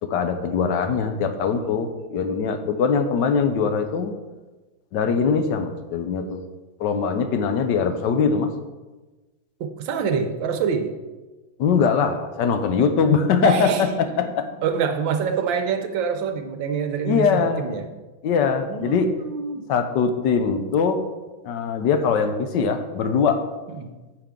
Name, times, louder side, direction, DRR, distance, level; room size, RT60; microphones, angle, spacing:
voice 1, 0.0-4.1 4.9-6.4 6.8-8.5 11.6-13.9 14.2-14.4 17.0-17.7 18.2-19.1 19.7-21.0 21.4-23.4, left 6 dB, 70° left, 8 dB, 1.2 m, -22 dB
voice 2, 9.6-10.9 13.4-13.8 14.2-14.3 14.6-17.9 18.6-19.7 23.7-23.9, right 6 dB, 70° right, 6 dB, 1.5 m, -26 dB
9.0 x 7.5 x 3.7 m, 1.2 s
omnidirectional pair, 2.3 m